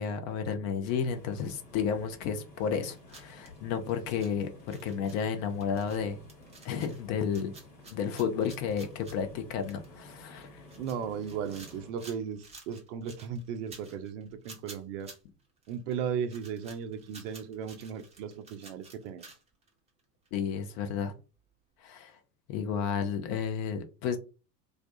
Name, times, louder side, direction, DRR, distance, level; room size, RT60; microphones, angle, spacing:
voice 1, 0.0-6.2 6.6-7.5 7.9-10.6 20.3-21.1 21.8-22.1 22.5-24.2, left 7 dB, 35° left, 0.5 m, -32 dB
sound 1, 0.8-11.9, left 1 dB, 65° left, 1.2 m, -52 dB
sound 2, 2.8-20.0 20.2-20.3 21.4-21.5, right 3 dB, 15° right, 0.7 m, -53 dB
voice 2, 10.8-15.1 15.7-19.3, right 7 dB, 50° right, 0.5 m, -36 dB
2.3 x 2.2 x 2.6 m
figure-of-eight pair, 75°, 49 cm